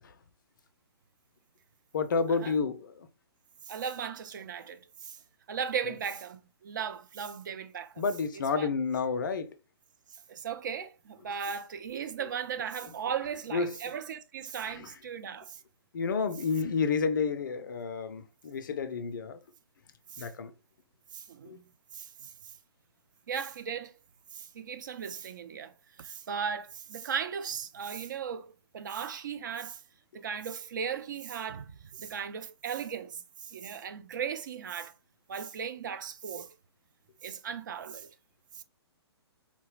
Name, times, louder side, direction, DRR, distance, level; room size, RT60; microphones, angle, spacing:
voice 1, 1.9-2.9 8.0-9.5 13.5-13.7 14.6-14.9 15.9-19.4 20.2-20.5 21.5-21.6, left 5 dB, 50° left, 0.4 m, -30 dB
voice 2, 3.7-5.2 5.5-8.1 8.3-8.7 10.1-15.6 20.1-20.3 21.1-21.6 21.9-22.5 23.3-23.9 24.3-29.8 30.1-34.9 35.3-36.5 37.2-38.1 38.5-38.6, right 7 dB, 45° right, 0.4 m, -37 dB
4.0 x 2.1 x 2.8 m
figure-of-eight pair, 125°, 14 cm